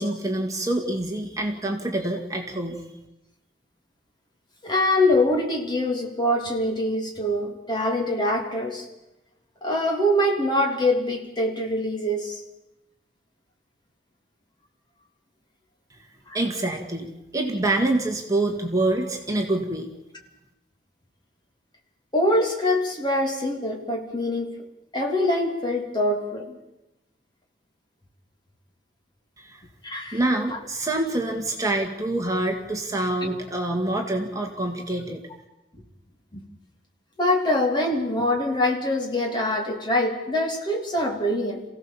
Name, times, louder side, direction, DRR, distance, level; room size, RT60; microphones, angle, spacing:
voice 1, 0.0-2.9 16.3-19.9 29.4-29.6 30.1-35.2, right 2 dB, 20° right, 2 dB, 2.0 m, -26 dB
voice 2, 4.6-8.9 9.6-12.4 16.3-16.4 22.1-24.6 24.9-26.6 29.8-30.2 30.5-30.6 33.2-33.3 36.3-36.4 37.2-41.6, left 1 dB, 25° left, 1 dB, 3.2 m, -24 dB
28.0 x 16.5 x 7.3 m, 0.94 s
head